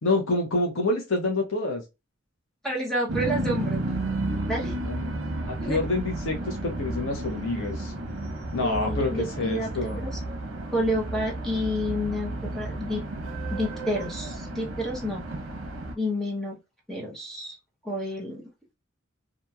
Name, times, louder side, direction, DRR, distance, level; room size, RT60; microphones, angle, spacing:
voice 1, 0.0-1.8 4.9-5.0 5.5-7.9 8.5-10.0, left 2 dB, 80° left, 0.8 m, -27 dB
voice 2, 2.6-3.8 4.4-4.7 5.6-5.8 8.6-10.1 10.7-13.0 13.5-15.2 16.0-16.6 16.9-17.6 17.8-18.4, equal, ahead, 0.8 m, -29 dB
sound 1, 3.1-15.9, right 2 dB, 80° right, 0.7 m, -32 dB
2.9 x 2.5 x 2.2 m
head